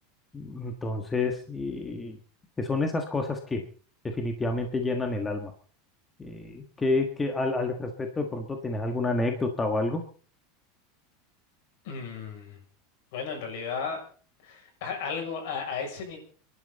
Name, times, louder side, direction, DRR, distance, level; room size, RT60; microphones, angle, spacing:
voice 1, 0.3-2.2 2.6-3.6 4.0-5.5 6.2-10.0, left 2 dB, 10° left, 4 dB, 1.5 m, -29 dB
voice 2, 11.8-12.6 13.1-14.0 14.4-16.2, left 6 dB, 60° left, 4 dB, 7.0 m, -34 dB
29.0 x 11.5 x 4.1 m, 0.42 s
supercardioid pair, 170°, 0 cm